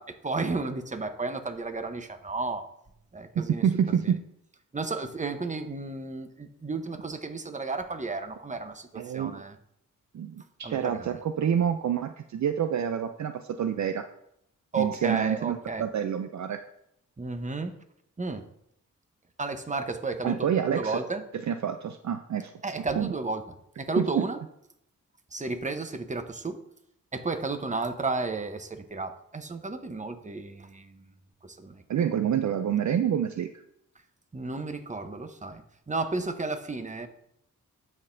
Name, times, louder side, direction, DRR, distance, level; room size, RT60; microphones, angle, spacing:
voice 1, 0.0-2.7 3.1-4.1 4.7-9.6 10.6-11.1 14.7-15.8 17.2-17.8 18.2-18.4 19.4-21.2 22.6-23.4 23.8-24.4 25.3-26.6 27.1-31.1 31.4-31.8 34.3-37.1, right 3 dB, 20° right, 8 dB, 0.9 m, -33 dB
voice 2, 3.4-4.2 9.0-9.4 10.1-14.1 14.7-16.6 20.2-21.0 21.5-22.5 23.0-23.1 24.0-24.2 31.9-33.5, right 8 dB, 55° right, 8 dB, 0.5 m, -27 dB
12.5 x 4.3 x 2.6 m, 0.75 s
cardioid pair, 55°, 33 cm